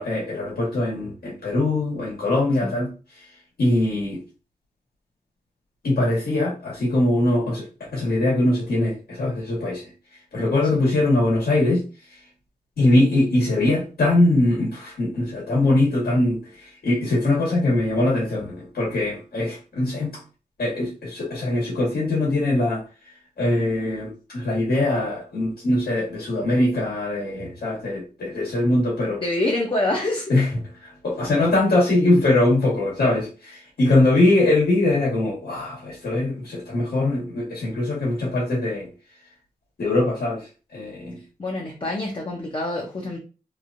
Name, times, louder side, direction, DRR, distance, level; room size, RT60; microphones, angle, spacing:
voice 1, 0.0-2.9 3.2-3.3 3.6-4.2 5.8-7.7 7.9-9.9 10.3-11.8 12.8-20.2 20.6-22.8 23.4-29.2 30.3-30.5 30.8-38.9 39.8-41.2, left 2 dB, 80° left, -4 dB, 1.4 m, -22 dB
voice 2, 29.2-30.3 41.4-43.2, left 2 dB, 35° left, -1 dB, 0.6 m, -26 dB
3.0 x 2.4 x 2.5 m, 0.34 s
cardioid pair, 70°, 16 cm